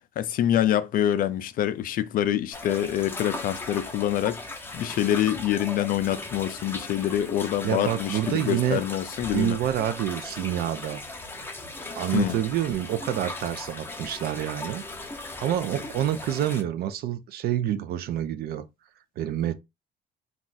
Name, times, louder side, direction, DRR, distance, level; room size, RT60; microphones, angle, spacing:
voice 1, 0.2-9.6 12.1-12.4, left 11 dB, 55° left, 0.4 m, -26 dB
sound 1, 2.5-16.6, left 2 dB, 15° left, 0.6 m, -38 dB
voice 2, 7.6-8.8 9.3-11.0 12.0-14.8 15.4-18.7 19.2-19.5, right 11 dB, 65° right, 0.4 m, -27 dB
2.4 x 2.4 x 3.9 m
cardioid pair, 110°, 17 cm